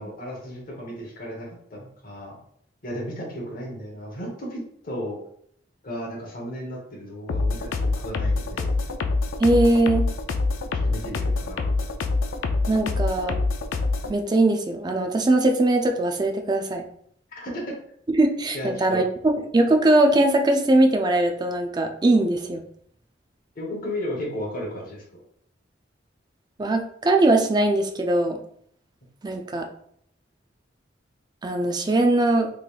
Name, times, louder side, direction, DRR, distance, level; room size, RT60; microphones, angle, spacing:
voice 1, 0.0-2.4 2.8-5.2 5.8-8.8 10.8-11.7 17.3-17.7 18.5-19.0 23.5-25.2, equal, 45° left, -2 dB, 1.2 m, -34 dB
sound 1, 7.3-14.1, left 3 dB, 85° left, 0.4 m, -25 dB
voice 2, 9.4-10.1 12.7-13.4 14.1-16.9 18.1-22.6 26.6-28.4 29.2-29.7 31.4-32.5, right 2 dB, 20° right, 4 dB, 0.4 m, -21 dB
3.8 x 3.2 x 2.4 m, 0.66 s
head